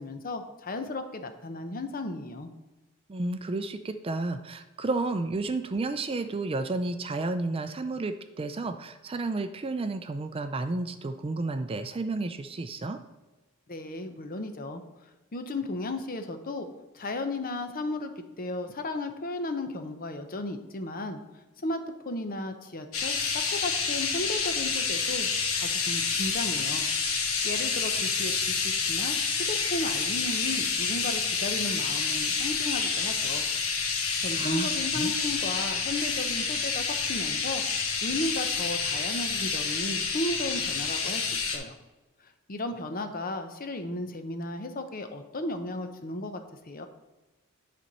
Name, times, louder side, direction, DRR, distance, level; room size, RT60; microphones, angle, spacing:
voice 1, 0.0-2.5 13.7-14.8 15.3-16.7 16.9-21.2 21.6-26.9 27.2-29.2 29.5-33.5 34.2-37.6 38.0-41.8 42.2-46.4 46.7-46.9, left 2 dB, 40° left, 7 dB, 0.8 m, -35 dB
voice 2, 3.1-13.0 34.3-34.7 35.0-35.1, right 3 dB, 25° right, 9 dB, 0.4 m, -31 dB
sound 1, 22.9-41.6, left 5 dB, 70° left, 1.3 m, -28 dB
9.2 x 4.3 x 5.4 m, 1.1 s
head